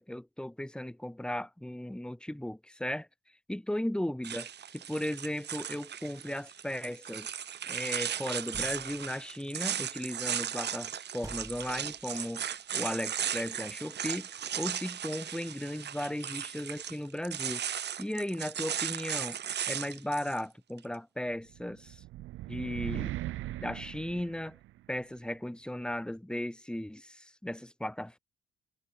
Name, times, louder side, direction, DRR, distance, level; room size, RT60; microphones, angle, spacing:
voice 1, 0.0-3.1 3.5-4.5 4.7-7.3 7.7-17.7 18.0-19.4 19.7-22.0 22.5-24.6 24.9-28.2, left 1 dB, 5° left, 4.3 m, -36 dB
sound 1, 4.2-20.4, right 9 dB, 60° right, 3.2 m, -36 dB
sound 2, 8.5-9.2 11.2-12.2, right 2 dB, 15° right, 6.6 m, -48 dB
sound 3, 21.5-24.9, right 16 dB, 85° right, 1.3 m, -39 dB
cardioid pair, 90°, 20 cm